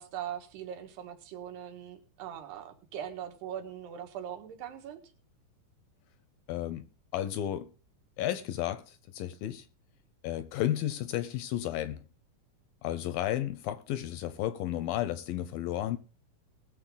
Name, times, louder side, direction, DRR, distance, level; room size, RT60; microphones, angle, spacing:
voice 1, 0.0-5.0, right 9 dB, 90° right, 3.8 m, -41 dB
voice 2, 6.5-6.9 7.1-7.7 8.2-9.7 10.2-12.0 12.8-16.0, left 12 dB, 80° left, 2.2 m, -33 dB
20.0 x 7.2 x 3.9 m
omnidirectional pair, 4.6 m